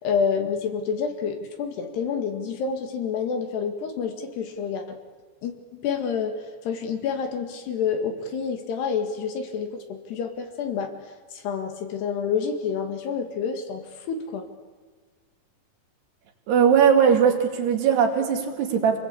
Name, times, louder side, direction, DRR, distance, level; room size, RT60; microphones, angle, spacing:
voice 1, 0.0-5.0 5.4-10.9 11.3-14.5, left 6 dB, 70° left, 6 dB, 4.1 m, -28 dB
voice 2, 16.5-19.0, right 7 dB, 70° right, 4 dB, 4.3 m, -19 dB
28.0 x 20.5 x 8.6 m, 1.4 s
omnidirectional pair, 5.0 m